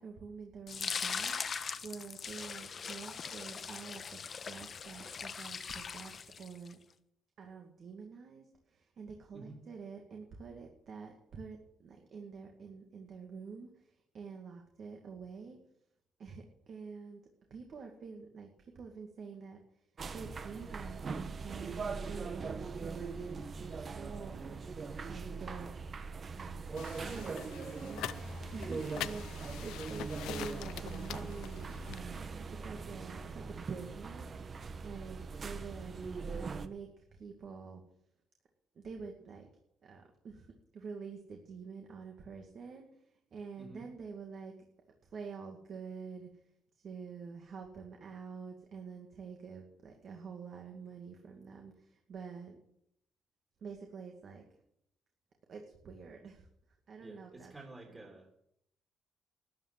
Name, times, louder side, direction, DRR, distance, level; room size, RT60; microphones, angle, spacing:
voice 1, 0.0-6.8 7.4-15.6 16.2-17.2 17.5-25.8 26.3-28.1 28.4-32.2 32.5-36.0 36.3-37.8 38.7-39.5 39.8-44.5 45.0-46.5 46.8-52.6 53.6-54.4 55.5-56.5 56.9-57.5 57.9-58.0, right 5 dB, 60° right, 3 dB, 2.2 m, -47 dB
sound 1, 0.7-6.7, left 6 dB, 45° left, 1.1 m, -40 dB
sound 2, 20.0-36.7, right 4 dB, 45° right, 1.2 m, -41 dB
sound 3, 26.8-32.0, left 13 dB, 90° left, 0.4 m, -44 dB
voice 2, 57.0-58.3, right 2 dB, 25° right, 1 dB, 3.1 m, -51 dB
13.0 x 10.0 x 7.5 m, 0.76 s
cardioid pair, 90°, 0 cm